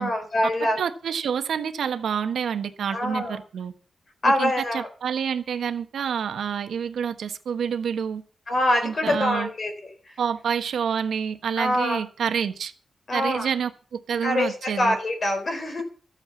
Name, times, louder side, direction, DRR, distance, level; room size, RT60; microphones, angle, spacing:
voice 1, 0.0-0.8 2.9-3.4 4.2-4.9 8.5-9.7 11.6-12.0 13.1-13.5 14.2-15.8, left 1 dB, 30° left, 5 dB, 4.2 m, -24 dB
voice 2, 0.8-3.7 4.2-8.2 8.8-9.5 10.2-12.7 13.1-15.0, right 7 dB, 80° right, 9 dB, 1.2 m, -28 dB
14.0 x 8.9 x 7.1 m, 0.38 s
wide cardioid pair, 180°, 0 cm